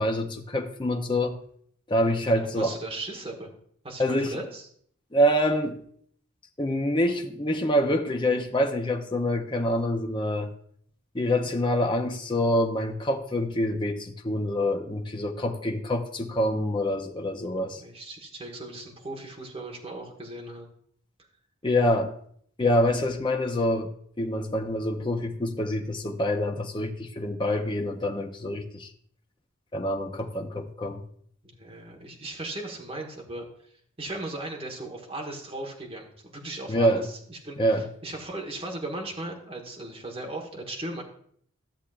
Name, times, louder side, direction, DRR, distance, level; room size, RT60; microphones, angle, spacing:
voice 1, 0.0-1.4 1.9-2.8 4.0-4.4 5.1-5.8 6.6-10.5 11.1-17.8 21.6-22.1 22.6-23.9 24.2-28.9 29.7-31.0 36.7-37.1 37.6-37.9, equal, 20° left, 4 dB, 0.6 m, -26 dB
voice 2, 2.5-3.5 3.8-4.7 17.5-20.7 31.4-33.5 34.0-37.6 38.0-41.0, right 2 dB, 25° right, 0 dB, 1.4 m, -37 dB
13.0 x 7.1 x 2.5 m, 0.63 s
head